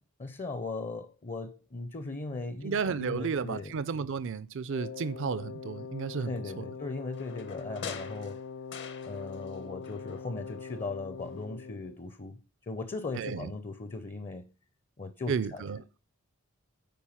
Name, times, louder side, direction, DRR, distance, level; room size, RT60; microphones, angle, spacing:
voice 1, 0.2-3.7 6.2-8.4 9.0-14.5 15.0-15.6, left 3 dB, 35° left, 0.6 m, -38 dB
voice 2, 2.6-6.6 13.1-13.5 15.3-16.0, right 5 dB, 60° right, 0.5 m, -33 dB
Wind instrument woodwind instrument, 4.7-12.0, left 5 dB, 90° left, 0.5 m, -42 dB
sound 1, 7.1-9.6 9.8-10.9 11.3-11.4, left 7 dB, 60° left, 0.9 m, -45 dB
9.3 x 4.6 x 5.6 m
head